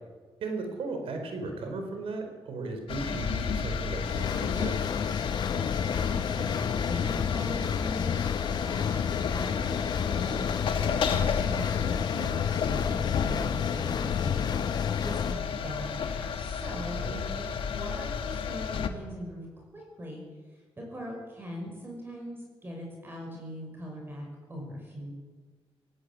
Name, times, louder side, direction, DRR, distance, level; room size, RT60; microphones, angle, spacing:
voice 1, 0.4-4.9 16.9-17.3, right 3 dB, 75° right, 5 dB, 4.6 m, -36 dB
sound 1, 2.9-18.9, left 6 dB, 65° left, 1.8 m, -32 dB
sound 2, 4.0-15.3, left 7 dB, 45° left, 0.6 m, -31 dB
voice 2, 5.5-8.2 8.6-9.8 10.1-14.7 15.0-19.4 19.7-20.2 20.9-25.1, equal, 20° right, 0 dB, 6.2 m, -41 dB
18.5 x 17.0 x 8.5 m, 1.4 s
cardioid pair, 125°, 10 cm